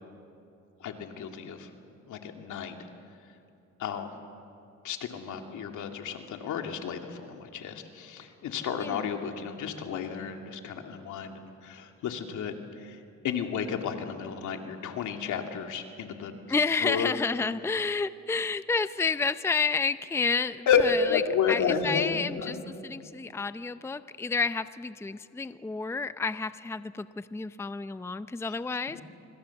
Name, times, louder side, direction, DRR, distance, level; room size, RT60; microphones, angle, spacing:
voice 1, 0.8-1.7 2.1-2.7 3.8-4.1 4.8-13.0 13.2-16.3 16.8-17.1 20.7-20.8 21.1-22.6 28.9-29.0, left 7 dB, 75° left, 4 dB, 2.5 m, -31 dB
voice 2, 16.5-21.2 21.5-29.0, left 4 dB, 10° left, 13 dB, 0.6 m, -30 dB
25.5 x 25.5 x 7.2 m, 2.7 s
cardioid pair, 90°, 30 cm